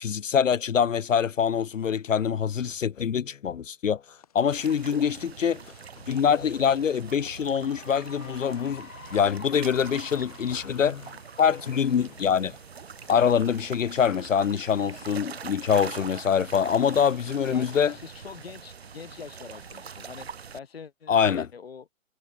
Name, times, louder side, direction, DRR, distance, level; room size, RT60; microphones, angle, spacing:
voice 1, 0.0-4.0 4.3-5.6 6.1-11.1 11.4-12.5 13.1-17.9 21.1-21.5, left 7 dB, 70° left, 0.8 m, -24 dB
chuze ve velmi vysokem snehu, 4.1-19.8, left 9 dB, 30° left, 3.5 m, -58 dB
sound 1, 4.5-20.6, right 6 dB, 50° right, 0.8 m, -43 dB
Cheering / Applause, 6.9-13.5, left 5 dB, 85° left, 3.7 m, -49 dB
voice 2, 17.1-20.3 20.5-21.9, left 6 dB, 45° left, 6.8 m, -44 dB
hypercardioid pair, 180°, 40 cm